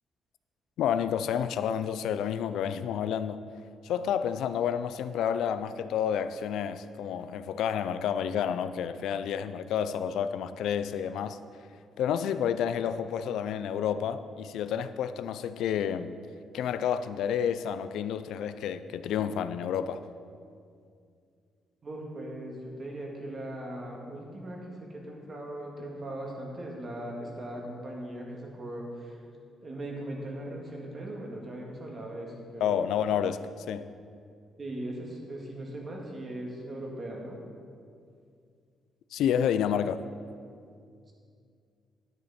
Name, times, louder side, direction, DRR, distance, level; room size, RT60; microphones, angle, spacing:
voice 1, 0.8-3.4 3.8-11.4 12.0-16.2 16.5-20.0 32.6-33.9 39.1-40.0, left 8 dB, 85° left, 12 dB, 0.4 m, -30 dB
voice 2, 21.8-29.2 29.6-32.9 34.6-37.4 41.1-41.2, right 1 dB, 35° right, -1 dB, 2.0 m, -39 dB
10.5 x 9.0 x 4.3 m, 2.3 s
cardioid pair, 120°, 0 cm